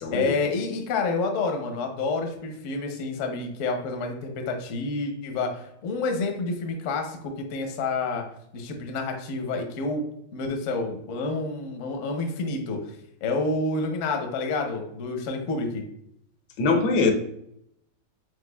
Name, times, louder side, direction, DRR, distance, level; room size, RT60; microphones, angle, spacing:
voice 1, 0.1-8.2 8.5-10.0 10.3-12.8 13.2-15.8, left 3 dB, 65° left, 4 dB, 0.8 m, -29 dB
voice 2, 16.6-17.1, left 3 dB, 85° left, 5 dB, 1.4 m, -22 dB
5.0 x 3.7 x 2.2 m, 0.75 s
omnidirectional pair, 2.0 m